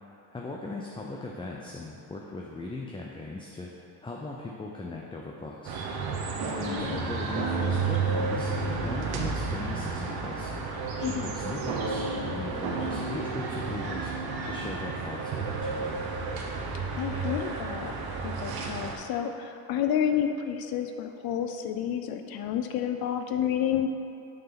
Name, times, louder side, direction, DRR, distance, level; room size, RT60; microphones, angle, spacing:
voice 1, 0.3-3.7 4.0-5.8 6.6-8.5 8.8-10.5 11.0-12.0 12.3-14.1 14.4-16.0, left 3 dB, 10° left, -2 dB, 0.6 m, -38 dB
sound 1, 5.6-19.0, right 4 dB, 60° right, 1.1 m, -32 dB
sound 2, 6.4-10.1 11.7-15.3, right 3 dB, 90° right, 1.1 m, -36 dB
voice 2, 11.0-11.4 17.0-23.9, left 9 dB, 60° left, 7 dB, 0.6 m, -30 dB
6.2 x 4.7 x 5.8 m, 2.7 s
supercardioid pair, 95°, 41 cm